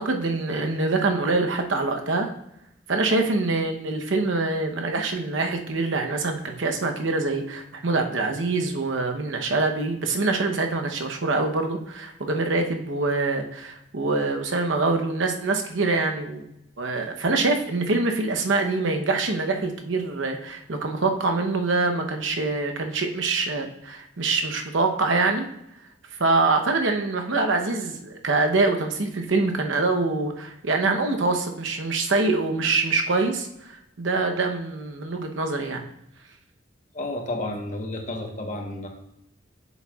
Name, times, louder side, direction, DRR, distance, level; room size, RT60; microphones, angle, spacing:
voice 1, 0.0-2.3 2.9-16.5 16.8-25.5 26.2-35.8, right 3 dB, 80° right, 4 dB, 0.8 m, -25 dB
voice 2, 36.9-38.9, left 2 dB, 40° left, 1 dB, 1.1 m, -31 dB
8.1 x 7.1 x 2.4 m, 0.83 s
head